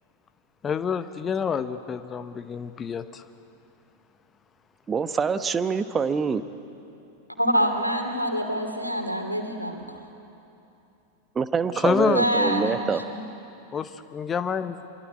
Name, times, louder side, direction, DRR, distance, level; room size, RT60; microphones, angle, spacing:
voice 1, 0.6-3.2 11.7-12.2 13.7-14.8, left 7 dB, 20° left, 11 dB, 0.9 m, -27 dB
voice 2, 4.9-6.4 11.3-13.0, right 5 dB, 20° right, 11 dB, 1.1 m, -25 dB
voice 3, 7.4-10.0 12.0-13.2, equal, 90° left, 4 dB, 2.7 m, -26 dB
27.0 x 24.0 x 8.5 m, 2.8 s
figure-of-eight pair, 90°, 0 cm